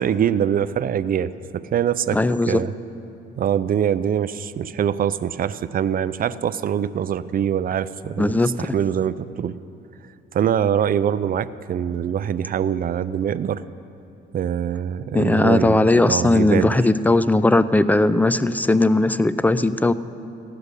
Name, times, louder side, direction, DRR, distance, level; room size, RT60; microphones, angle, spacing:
voice 1, 0.0-2.2 2.5-2.7 3.4-8.3 8.6-9.5 10.3-13.6 14.3-16.8, right 9 dB, 45° right, 15 dB, 0.5 m, -23 dB
voice 2, 2.1-2.6 8.2-8.5 15.1-19.9, left 2 dB, 10° left, 14 dB, 0.4 m, -18 dB
15.0 x 6.8 x 9.8 m, 2.7 s
cardioid pair, 90°, 20 cm